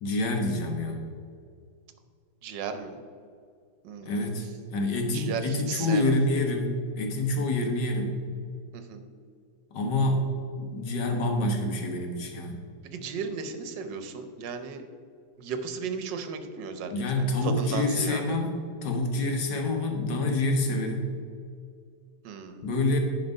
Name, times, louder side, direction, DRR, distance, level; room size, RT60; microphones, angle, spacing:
voice 1, 0.0-1.0 4.0-4.5 4.7-8.2 9.7-10.2 10.6-12.6 16.9-18.5 18.8-21.1 22.6-23.0, left 2 dB, 75° left, 2 dB, 1.9 m, -27 dB
voice 2, 2.4-3.0 3.8-4.3 5.1-6.2 8.7-9.0 12.9-14.8 15.4-18.4 22.2-22.7, right 5 dB, 80° right, 8 dB, 1.5 m, -35 dB
10.5 x 5.1 x 5.3 m, 2.2 s
omnidirectional pair, 1.9 m